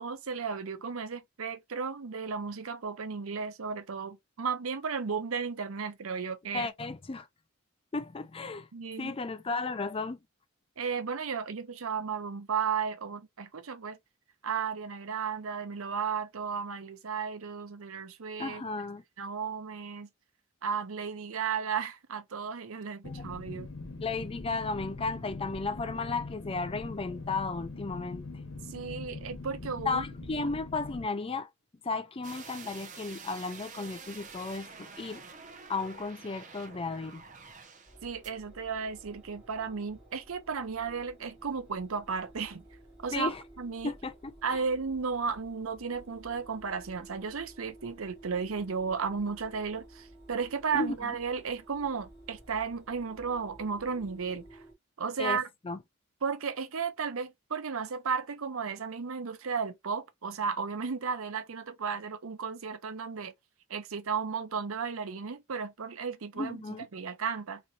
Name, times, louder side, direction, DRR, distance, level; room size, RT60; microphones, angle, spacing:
voice 1, 0.0-6.7 8.7-9.1 10.8-14.0 14.4-18.6 19.2-20.1 20.6-23.7 28.7-30.1 30.4-30.5 38.0-42.6 43.0-43.9 44.4-54.6 55.0-55.5 56.2-63.3 63.7-67.6, right 5 dB, 70° right, 0.6 m, -34 dB
voice 2, 6.5-7.3 7.9-8.7 9.0-10.2 18.4-19.0 23.0-23.2 24.0-28.2 29.8-31.5 31.8-35.2 35.7-37.2 43.1-43.4 43.8-44.1 50.7-51.1 55.2-55.4 55.7-55.8 66.4-66.9, left 3 dB, 25° left, 0.4 m, -34 dB
sound 1, 23.0-31.0, left 3 dB, 80° left, 1.2 m, -42 dB
sound 2, 32.2-38.0 38.2-38.3, right 5 dB, 35° right, 0.8 m, -48 dB
sound 3, 37.9-54.7, right 1 dB, 5° right, 2.4 m, -54 dB
4.0 x 3.1 x 2.5 m
head